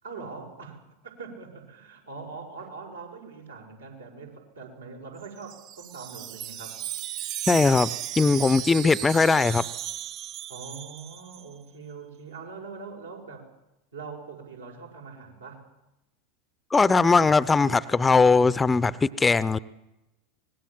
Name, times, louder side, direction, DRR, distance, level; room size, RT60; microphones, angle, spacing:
voice 1, 0.0-6.8 10.5-13.5 13.9-15.6, right 4 dB, 75° right, 1 dB, 5.7 m, -42 dB
Wind chime, 5.2-11.4, right 12 dB, 45° right, 1.1 m, -35 dB
voice 2, 7.5-9.6 16.7-19.6, left 4 dB, 15° left, 19 dB, 0.8 m, -20 dB
24.5 x 20.0 x 7.5 m, 0.92 s
figure-of-eight pair, 80°, 0 cm